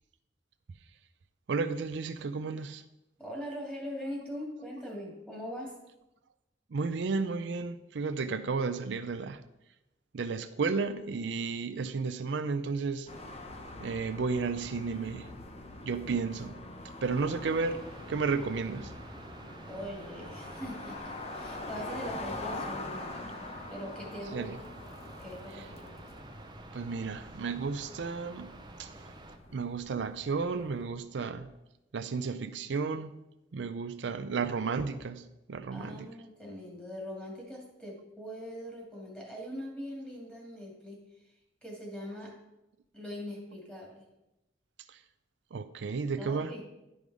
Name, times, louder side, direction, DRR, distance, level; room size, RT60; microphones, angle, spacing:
voice 1, 1.5-2.8 6.7-9.4 10.1-13.1 13.8-15.3 15.8-16.6 17.0-17.8 18.1-18.9 24.3-24.6 26.7-28.5 28.8-28.9 29.5-31.5 31.9-33.1 33.5-36.1 44.9-45.0 45.5-46.5, right 4 dB, 75° right, 10 dB, 0.5 m, -33 dB
voice 2, 3.2-5.7 19.7-23.3 23.7-24.5 25.2-25.9 35.7-42.3 42.9-44.0 46.1-46.6, equal, 5° left, -2 dB, 2.4 m, -42 dB
sound 1, 13.1-30.9, left 2 dB, 35° left, 0.9 m, -44 dB
sound 2, 17.4-29.4, right 2 dB, 25° right, 0.7 m, -50 dB
11.0 x 5.3 x 4.8 m, 0.94 s
head